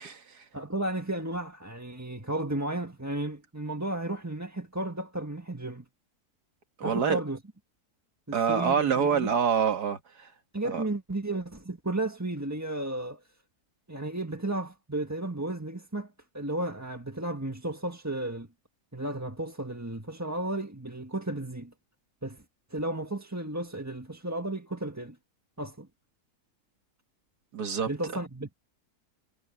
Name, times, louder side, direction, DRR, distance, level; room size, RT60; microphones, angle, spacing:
voice 1, 0.0-0.4 6.8-7.2 8.3-10.3 10.6-10.8 27.5-27.9, right 7 dB, 85° right, 2.4 m, -26 dB
voice 2, 0.5-5.8 6.8-7.4 8.3-9.3 10.5-13.2 13.9-18.5 18.9-21.7 22.2-22.4 22.7-25.2 25.6-25.9 27.9-28.5, right 1 dB, 10° right, 1.5 m, -33 dB
omnidirectional pair, 1.7 m